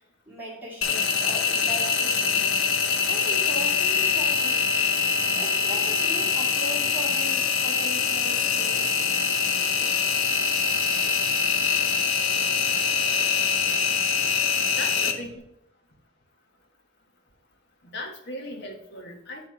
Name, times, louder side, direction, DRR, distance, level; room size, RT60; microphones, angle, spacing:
voice 1, 0.3-2.5 3.1-4.6 5.3-8.9, right 1 dB, 10° right, -6 dB, 2.4 m, -38 dB
Engine, 0.8-15.1, left 6 dB, 75° left, 0.9 m, -24 dB
voice 2, 14.7-15.3 17.8-19.5, left 1 dB, 55° left, 2 dB, 1.4 m, -37 dB
8.5 x 3.5 x 5.7 m, 0.79 s
head